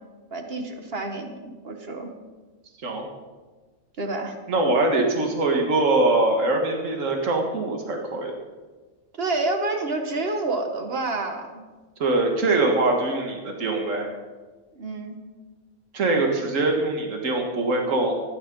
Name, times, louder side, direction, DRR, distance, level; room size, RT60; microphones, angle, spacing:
voice 1, 0.3-2.1 4.0-4.4 9.2-11.5 14.7-15.2, right 2 dB, 45° right, 4 dB, 1.7 m, -28 dB
voice 2, 4.5-8.4 12.0-14.1 15.9-18.1, right 2 dB, 70° right, 2 dB, 2.1 m, -23 dB
15.0 x 10.0 x 5.4 m, 1.3 s
omnidirectional pair, 1.4 m